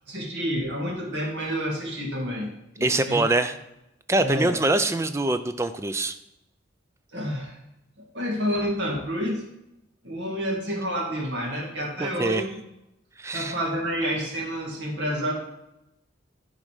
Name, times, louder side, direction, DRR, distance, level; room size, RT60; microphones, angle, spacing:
voice 1, 0.1-3.2 4.2-4.5 7.1-7.6 8.1-9.4 10.0-12.5 13.3-15.3, equal, 70° right, -1 dB, 2.1 m, -29 dB
voice 2, 2.8-3.6 4.1-6.2 12.0-12.4 13.2-13.5, right 2 dB, 15° right, 10 dB, 0.3 m, -24 dB
10.5 x 4.0 x 4.9 m, 0.89 s
head